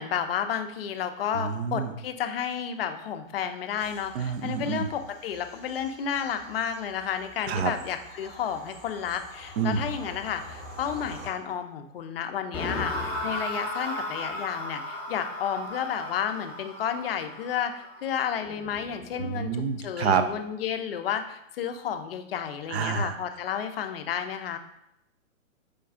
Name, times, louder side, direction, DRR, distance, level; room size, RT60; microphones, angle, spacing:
voice 1, 0.0-24.6, left 8 dB, 50° left, 7 dB, 0.5 m, -32 dB
voice 2, 1.3-1.9 4.1-4.9 7.5-7.7 9.6-9.9 19.2-20.3 22.7-23.2, right 6 dB, 55° right, 9 dB, 0.5 m, -28 dB
Bird vocalization bird call bird song / Train, 3.8-11.3, equal, 25° right, 0.9 m, -47 dB
sound 1, 12.5-19.6, left 1 dB, 5° left, 0.6 m, -36 dB
5.0 x 2.3 x 3.5 m, 0.81 s
hypercardioid pair, 125°, 40 cm